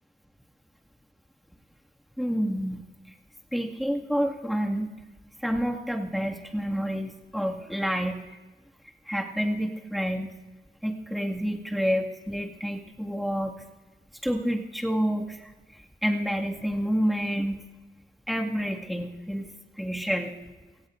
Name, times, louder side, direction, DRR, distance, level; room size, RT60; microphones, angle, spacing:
voice 1, 2.2-2.8 3.5-4.9 5.4-8.4 9.1-10.3 10.8-13.5 14.2-17.6 18.3-19.5 19.8-20.4, equal, ahead, 0 dB, 2.0 m, -29 dB
25.5 x 17.0 x 2.6 m, 1.2 s
cardioid pair, 55°, 19 cm